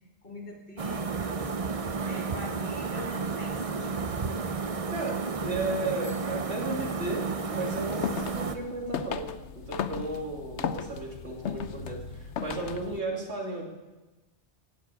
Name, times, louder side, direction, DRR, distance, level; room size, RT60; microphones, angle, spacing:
voice 1, 0.2-1.5 2.0-4.3, left 1 dB, 55° left, 1 dB, 2.7 m, -43 dB
sound 1, 0.8-8.6, right 4 dB, 35° right, 0.7 m, -32 dB
voice 2, 4.9-9.3 9.5-13.6, right 2 dB, 75° right, -1 dB, 3.0 m, -34 dB
Bicycle bell, 6.0-7.7, equal, 10° right, 1.6 m, -56 dB
sound 2, 7.8-13.0, left 7 dB, 80° left, 1.0 m, -36 dB
17.0 x 7.4 x 8.2 m, 1.2 s
omnidirectional pair, 1.2 m